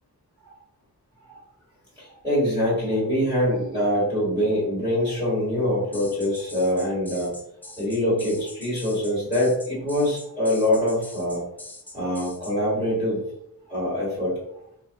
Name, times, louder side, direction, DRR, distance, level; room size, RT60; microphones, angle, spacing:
voice 1, 2.2-7.3 7.8-11.4 11.9-13.2 13.7-14.3, left 1 dB, 10° right, -9 dB, 1.5 m, -24 dB
sound 1, 5.9-12.6, left 2 dB, 5° left, 0.3 m, -43 dB
3.5 x 3.0 x 2.8 m, 0.73 s
wide cardioid pair, 160°, 36 cm